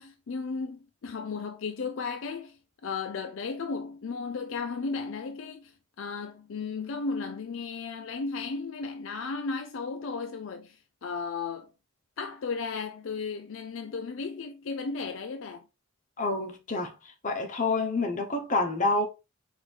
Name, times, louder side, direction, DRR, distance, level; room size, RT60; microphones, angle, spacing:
voice 1, 0.0-11.7 12.2-15.7, left 4 dB, 65° left, 0.4 m, -35 dB
voice 2, 16.2-16.9 17.2-19.1, left 2 dB, 40° left, 0.9 m, -27 dB
4.7 x 2.6 x 3.6 m
head